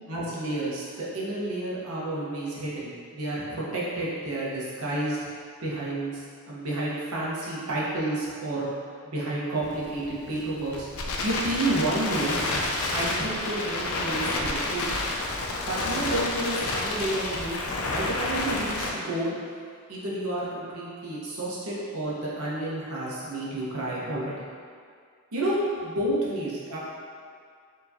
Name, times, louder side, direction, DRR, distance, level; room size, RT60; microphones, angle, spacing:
voice 1, 0.0-5.2 5.6-6.2 6.5-8.7 9.0-10.9 11.2-12.4 12.9-14.9 15.7-19.3 19.9-24.3 25.3-25.6 25.8-26.8, right 1 dB, 85° right, -6 dB, 1.0 m, -30 dB
Crackle, 9.6-18.9, left 2 dB, 75° left, 0.5 m, -30 dB
4.7 x 3.0 x 2.6 m, 2.1 s
head